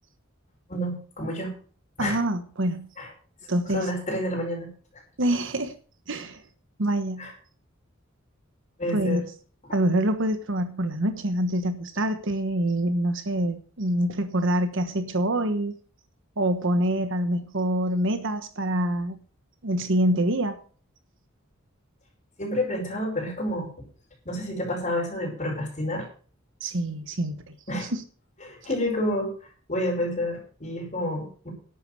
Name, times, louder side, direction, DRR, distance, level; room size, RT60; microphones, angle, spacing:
voice 1, 0.7-1.5 2.0-2.2 3.0-3.1 3.7-4.7 7.2-7.3 8.8-9.2 22.4-23.7 24.3-26.1 27.7-27.9 28.4-29.3 29.7-31.5, left 1 dB, 35° left, -2 dB, 5.2 m, -29 dB
voice 2, 2.0-2.9 3.5-3.9 5.2-5.7 6.1-6.4 6.8-7.3 8.9-9.2 9.7-15.7 16.4-19.2 19.6-20.6 26.6-27.5, right 1 dB, 65° right, 10 dB, 1.3 m, -25 dB
11.5 x 8.8 x 6.4 m, 0.42 s
head